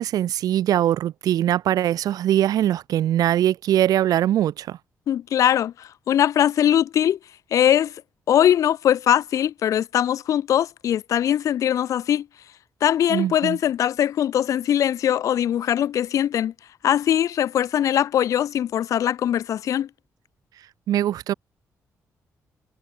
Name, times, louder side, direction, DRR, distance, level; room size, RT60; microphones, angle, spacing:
voice 1, 0.0-4.8 13.1-13.6 20.9-21.3, right 12 dB, 90° right, 2.3 m, -22 dB
voice 2, 5.1-7.2 7.5-7.9 8.3-12.2 12.8-16.5 16.8-19.9, left 10 dB, 60° left, 0.6 m, -21 dB
wide cardioid pair, 165°, 6 cm